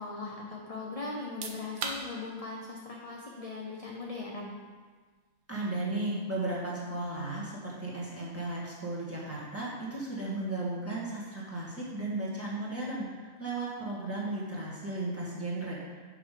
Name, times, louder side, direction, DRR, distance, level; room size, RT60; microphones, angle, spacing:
voice 1, 0.0-4.5, left 3 dB, 40° left, -2 dB, 0.5 m, -39 dB
sound 1, 1.2-13.8, right 4 dB, 75° right, 1.2 m, -49 dB
voice 2, 5.5-16.1, right 2 dB, 10° right, -7 dB, 1.7 m, -35 dB
6.0 x 5.9 x 5.0 m, 1.5 s
omnidirectional pair, 1.5 m